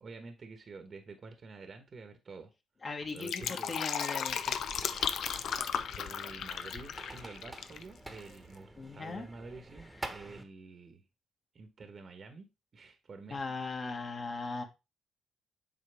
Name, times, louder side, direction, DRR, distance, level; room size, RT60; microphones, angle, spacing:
voice 1, 0.0-2.5 3.1-4.0 5.3-11.0 11.5-12.5 12.7-13.4, right 4 dB, 45° right, 1.1 m, -49 dB
voice 2, 2.8-4.6 5.1-5.4 8.8-9.2 13.3-14.6, left 3 dB, 40° left, 1.7 m, -39 dB
Fill (with liquid), 3.0-7.8 8.1-8.2, left 8 dB, 70° left, 0.6 m, -35 dB
sound 1, 4.3-10.4, right 2 dB, 10° right, 1.2 m, -48 dB
7.8 x 4.6 x 3.4 m
cardioid pair, 90°, 0 cm